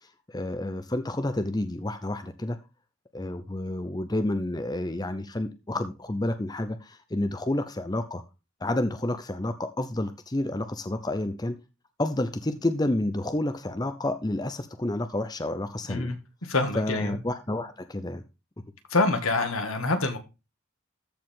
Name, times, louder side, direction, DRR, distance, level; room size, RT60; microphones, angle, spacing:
voice 1, 0.0-2.6 3.1-8.2 8.6-11.6 12.0-16.1 16.7-18.2, left 1 dB, 20° left, 9 dB, 0.6 m, -30 dB
voice 2, 16.4-17.2 18.9-20.2, left 3 dB, 75° left, 6 dB, 2.0 m, -26 dB
14.0 x 4.9 x 3.7 m, 0.28 s
head